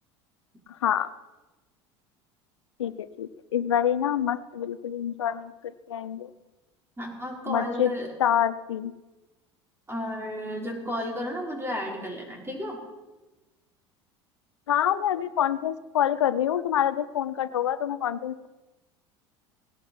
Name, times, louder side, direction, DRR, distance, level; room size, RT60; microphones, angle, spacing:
voice 1, 0.8-1.1 2.8-5.5 5.9-6.3 7.5-7.9 8.2-8.9 14.7-18.5, left 10 dB, 85° left, 13 dB, 0.6 m, -26 dB
voice 2, 7.0-8.1 9.9-12.8, left 1 dB, 15° right, -1 dB, 5.5 m, -33 dB
18.0 x 10.5 x 5.9 m, 1.1 s
hypercardioid pair, 75°, 15 cm